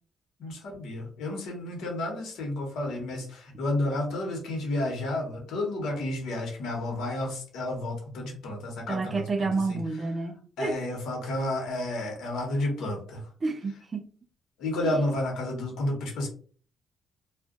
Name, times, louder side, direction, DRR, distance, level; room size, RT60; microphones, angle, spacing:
voice 1, 0.4-9.8 10.6-13.2 14.6-16.3, left 1 dB, 80° left, 1.1 m, -31 dB
voice 2, 8.9-10.8 13.4-14.1 14.8-15.0, right 3 dB, 35° right, 0.4 m, -30 dB
2.4 x 2.1 x 3.7 m
cardioid pair, 90°, 0 cm